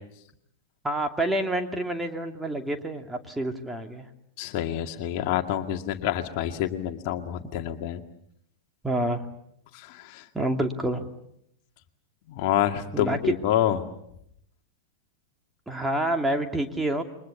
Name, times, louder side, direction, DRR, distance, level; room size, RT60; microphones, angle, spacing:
voice 1, 0.8-4.1 8.8-9.2 10.3-11.1 12.9-13.2 15.7-17.0, right 1 dB, 10° right, 4 dB, 2.7 m, -28 dB
voice 2, 4.4-8.0 9.7-10.3 12.3-13.9, left 11 dB, 45° left, 5 dB, 2.0 m, -27 dB
29.0 x 24.0 x 7.1 m, 0.78 s
figure-of-eight pair, 100°, 0 cm